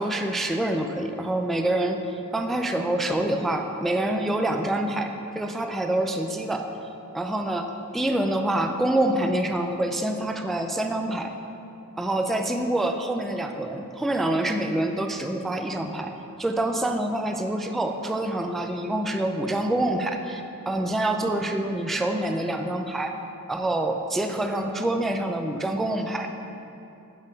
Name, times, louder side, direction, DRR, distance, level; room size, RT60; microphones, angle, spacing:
voice 1, 0.0-6.7 7.1-11.3 12.0-16.1 16.4-23.1 23.5-26.3, right 1 dB, ahead, 5 dB, 0.3 m, -26 dB
7.1 x 4.4 x 5.1 m, 2.8 s
wide cardioid pair, 90°, 34 cm